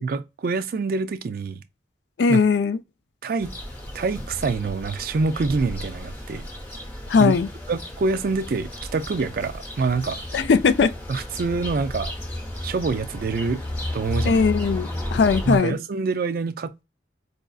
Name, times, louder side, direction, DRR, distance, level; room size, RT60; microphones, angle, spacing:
voice 1, 0.0-1.6 2.3-2.4 3.2-3.5 3.9-6.5 7.2-7.4 7.7-10.2 11.1-12.1 12.6-13.6 13.9-14.5 15.4-16.8, right 4 dB, 50° right, 0.3 m, -26 dB
voice 2, 2.2-2.8 7.1-7.5 10.3-10.9 14.3-15.8, left 5 dB, 65° left, 0.4 m, -19 dB
sound 1, 3.4-15.6, left 1 dB, 10° left, 0.8 m, -33 dB
4.7 x 2.4 x 2.3 m
head